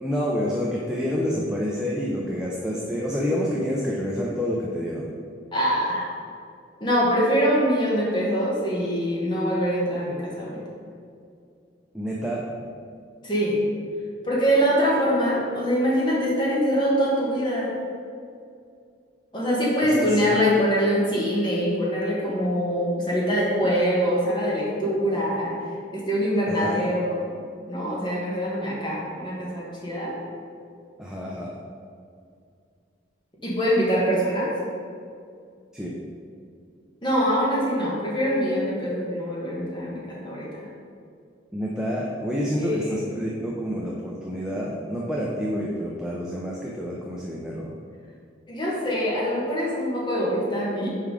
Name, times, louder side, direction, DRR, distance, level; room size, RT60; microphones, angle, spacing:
voice 1, 0.0-5.1 11.9-12.4 19.8-20.4 26.5-26.9 31.0-31.5 35.7-35.9 41.5-47.7, equal, 5° right, -4 dB, 0.5 m, -28 dB
voice 2, 5.5-6.1 6.8-10.6 13.2-13.6 14.2-17.8 19.3-25.5 25.9-27.2 27.7-30.1 33.4-34.5 37.0-40.7 42.5-43.0 48.5-50.9, equal, 25° left, -5 dB, 1.5 m, -24 dB
5.6 x 4.7 x 4.9 m, 2.3 s
head